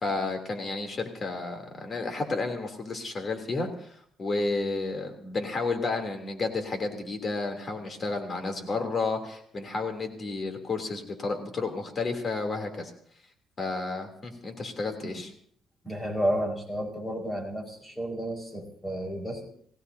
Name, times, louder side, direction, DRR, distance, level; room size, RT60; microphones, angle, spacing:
voice 1, 0.0-12.9 13.6-15.3, left 3 dB, 40° left, 4 dB, 3.2 m, -31 dB
voice 2, 15.8-19.5, equal, 15° left, 2 dB, 5.1 m, -31 dB
27.0 x 17.0 x 2.8 m, 0.62 s
cardioid pair, 90°, 0 cm